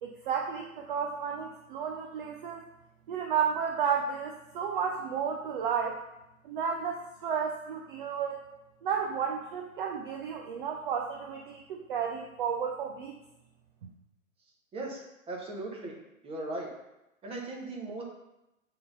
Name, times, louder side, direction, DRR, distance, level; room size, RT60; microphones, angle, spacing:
voice 1, 0.0-2.6 3.1-6.0 6.4-8.5 8.8-13.2, right 7 dB, 40° right, 1 dB, 0.7 m, -32 dB
voice 2, 14.7-15.9 16.2-16.7 17.2-18.0, right 2 dB, 15° right, -1 dB, 1.4 m, -38 dB
7.5 x 3.9 x 5.6 m, 0.91 s
figure-of-eight pair, 125°, 41 cm